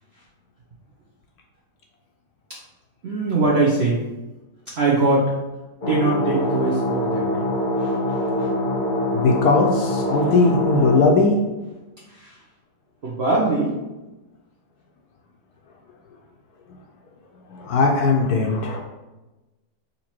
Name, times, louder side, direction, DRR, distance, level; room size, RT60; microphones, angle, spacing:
voice 1, 3.0-4.0 4.7-5.3 5.9-7.4 7.8-7.9 8.4-8.5 10.2-10.3 12.1-12.4 13.0-13.8, right 3 dB, 65° right, -4 dB, 0.6 m, -22 dB
sound 1, 5.8-11.0, left 1 dB, 35° left, 0.9 m, -24 dB
voice 2, 9.1-11.3 17.5-18.8, left 3 dB, 70° left, 1 dB, 1.0 m, -19 dB
4.0 x 2.9 x 4.3 m, 1.1 s
omnidirectional pair, 2.0 m